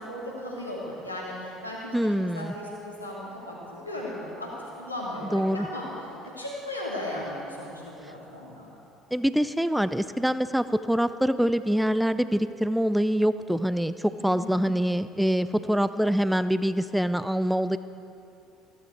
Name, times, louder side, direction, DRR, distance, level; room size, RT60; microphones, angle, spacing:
voice 1, 0.0-5.9 6.4-8.7 14.2-14.7, left 1 dB, 90° left, -5 dB, 2.4 m, -36 dB
voice 2, 1.9-2.5 5.3-5.7 9.1-17.8, equal, 5° right, 13 dB, 0.4 m, -25 dB
15.0 x 13.5 x 4.7 m, 2.8 s
figure-of-eight pair, 60°, 0 cm